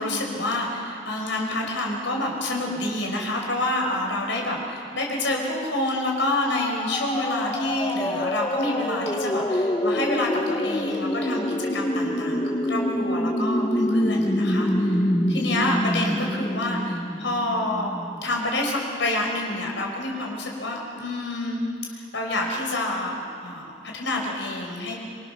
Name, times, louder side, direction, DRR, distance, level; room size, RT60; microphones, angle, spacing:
voice 1, 0.0-15.0 15.3-17.9 18.2-21.6 21.9-24.9, left 1 dB, 75° left, 0 dB, 5.0 m, -28 dB
sound 1, 6.4-18.2, left 1 dB, 20° left, 1.1 m, -26 dB
27.5 x 24.5 x 6.6 m, 2.5 s
head